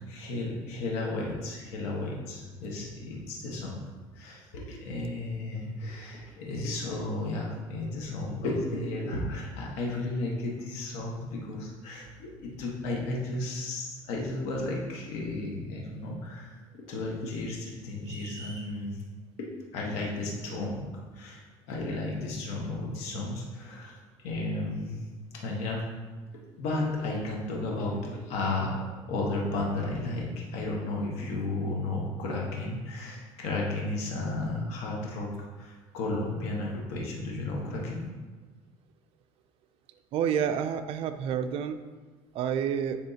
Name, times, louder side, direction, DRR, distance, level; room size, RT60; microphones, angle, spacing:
voice 1, 0.1-3.7 4.1-19.0 19.7-20.9 21.1-25.0 25.3-25.8 26.6-28.7 29.1-35.3 35.6-38.0, left 2 dB, 85° left, -2 dB, 1.4 m, -33 dB
sound 1, 18.0-18.7, right 2 dB, 45° right, 1.6 m, -45 dB
voice 2, 40.1-41.8 42.3-43.0, right 8 dB, 60° right, 9 dB, 0.4 m, -29 dB
9.9 x 3.5 x 2.8 m, 1.3 s
cardioid pair, 125°, 11 cm